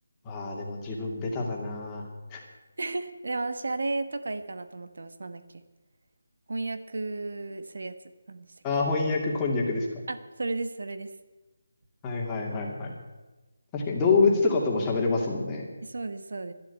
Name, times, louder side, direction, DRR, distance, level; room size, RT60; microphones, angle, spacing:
voice 1, 0.2-2.0 2.3-2.4 8.6-9.9 12.0-12.9 13.7-15.6, left 4 dB, 15° left, -1 dB, 2.4 m, -26 dB
voice 2, 2.8-5.6 6.5-8.0 8.3-8.5 10.1-11.1 15.8-16.5, right 3 dB, 70° right, 10 dB, 1.4 m, -33 dB
12.5 x 11.5 x 8.4 m, 1.1 s
figure-of-eight pair, 165°, 0 cm